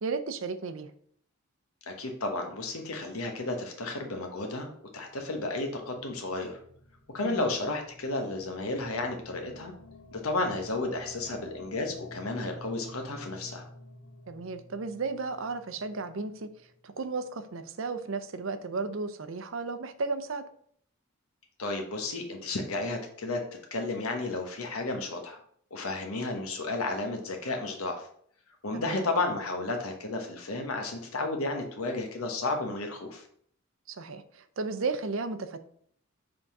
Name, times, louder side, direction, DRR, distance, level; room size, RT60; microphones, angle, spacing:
voice 1, 0.0-0.9 7.2-7.5 14.3-16.5 16.8-20.4 28.7-29.0 33.9-35.6, right 4 dB, 65° right, 11 dB, 0.6 m, -34 dB
voice 2, 1.9-6.6 7.1-9.7 10.1-13.7 21.6-23.4 23.7-25.4 25.7-28.1 28.6-33.2, left 2 dB, 90° left, 3 dB, 1.1 m, -32 dB
sound 1, 4.8-17.0, left 1 dB, 65° left, 1.2 m, -50 dB
5.2 x 3.7 x 5.9 m, 0.62 s
head